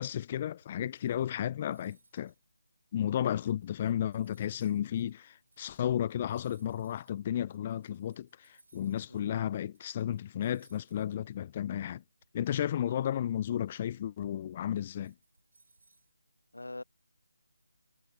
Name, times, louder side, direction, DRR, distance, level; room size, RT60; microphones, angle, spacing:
voice 1, 0.0-2.3 2.9-8.3 8.7-12.0 12.3-15.1, left 10 dB, 25° left, 0.3 m, -33 dB
sound 1, 0.6-9.3 9.5-11.2 11.5-11.6 12.2-16.1, right 3 dB, 65° right, 7.4 m, -67 dB
voice 2, 16.5-16.8, left 2 dB, 85° left, 1.5 m, -44 dB
figure-of-eight pair, 160°, 0 cm